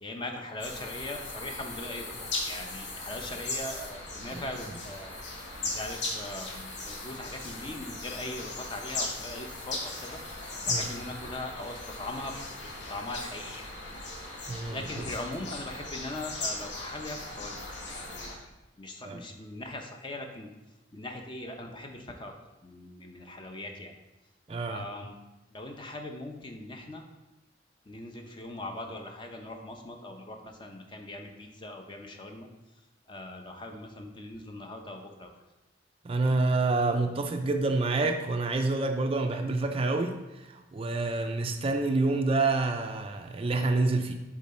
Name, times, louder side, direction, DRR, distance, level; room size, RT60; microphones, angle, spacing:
voice 1, 0.0-5.1 5.6-10.2 10.7-12.4 12.6-13.6 14.7-17.5 17.9-18.3 18.8-20.5 20.9-22.3 22.6-23.9 24.7-25.2 25.5-27.0 27.9-32.5 33.1-35.3, left 1 dB, 25° left, 4 dB, 0.7 m, -40 dB
sound 1, 0.6-18.4, left 2 dB, 70° left, 1.3 m, -38 dB
voice 2, 14.5-15.0 19.0-19.2 24.5-24.8 36.0-44.1, right 3 dB, 30° right, 5 dB, 0.4 m, -28 dB
7.2 x 3.9 x 4.3 m, 1.0 s
head